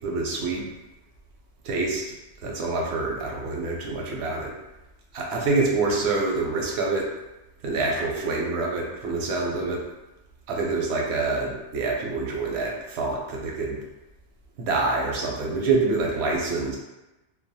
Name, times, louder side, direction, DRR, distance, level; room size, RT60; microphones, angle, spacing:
voice 1, 0.0-0.6 1.6-2.0 2.4-4.5 5.1-7.1 7.6-9.8 10.5-13.8 14.6-16.8, right 3 dB, 80° right, -1 dB, 0.8 m, -26 dB
2.3 x 2.1 x 2.6 m, 1.0 s
omnidirectional pair, 1.1 m